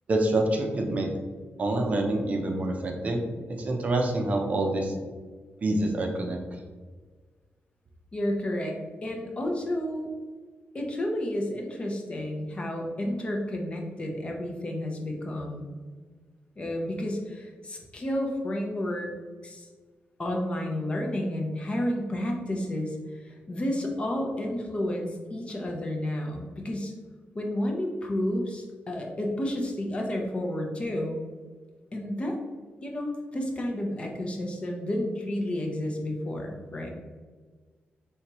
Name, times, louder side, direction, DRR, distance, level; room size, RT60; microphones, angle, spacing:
voice 1, 0.1-1.1 1.6-4.9 5.6-6.6, right 2 dB, 35° right, 2 dB, 0.5 m, -27 dB
voice 2, 8.1-10.1 10.7-15.7 16.6-19.1 19.4-19.7 20.2-26.9 27.3-31.2 31.9-32.4 32.8-36.9, left 1 dB, 25° left, 1 dB, 0.6 m, -31 dB
4.4 x 3.5 x 2.9 m, 1.4 s
wide cardioid pair, 160°, 4 cm